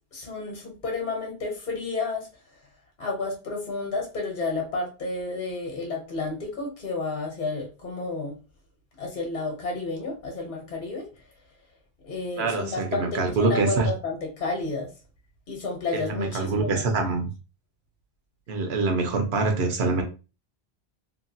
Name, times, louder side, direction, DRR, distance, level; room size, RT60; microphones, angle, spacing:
voice 1, 0.1-2.3 3.0-8.3 9.0-11.1 12.0-14.9 15.5-16.8, left 3 dB, 50° left, 0 dB, 0.9 m, -31 dB
voice 2, 12.4-13.9 15.9-17.3 18.5-20.0, right 3 dB, 85° right, 4 dB, 0.9 m, -25 dB
2.9 x 2.3 x 2.6 m, 0.33 s
omnidirectional pair, 1.1 m